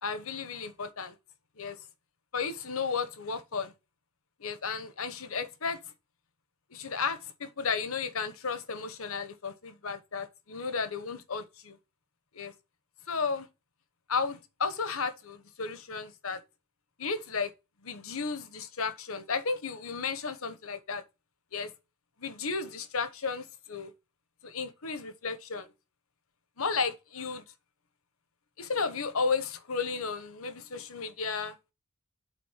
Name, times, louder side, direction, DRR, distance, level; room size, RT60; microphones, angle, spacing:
voice 1, 0.0-1.1 1.6-1.8 2.3-3.7 4.4-5.8 6.7-11.8 12.3-12.5 13.1-13.5 14.1-16.4 17.0-17.5 17.8-21.0 21.5-21.7 22.2-23.9 24.4-25.7 26.6-27.4 28.6-31.5, left 5 dB, 65° left, 1.0 m, -33 dB
9.3 x 4.1 x 5.7 m
head